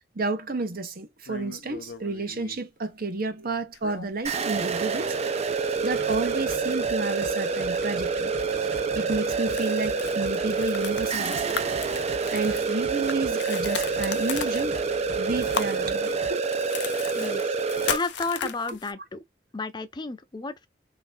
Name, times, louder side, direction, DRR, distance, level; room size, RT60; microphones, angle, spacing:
voice 1, 0.1-5.1 5.8-8.3 8.9-11.7 12.3-14.8 15.2-16.4 18.7-18.8, right 3 dB, 55° right, 0.9 m, -31 dB
sound 1, 1.2-2.6 3.7-4.5 4.8-4.9 5.3-6.8 7.2-7.4 7.7-8.0 8.4-8.5 8.9-18.9, left 7 dB, 75° left, 0.6 m, -37 dB
sound 2, 4.2-18.0, right 5 dB, 35° right, 0.6 m, -27 dB
sound 3, 5.8-16.3, right 1 dB, 90° right, 1.6 m, -43 dB
voice 2, 17.1-17.5 17.9-19.2 19.5-20.7, left 3 dB, 25° left, 0.5 m, -32 dB
3.3 x 2.9 x 3.8 m
head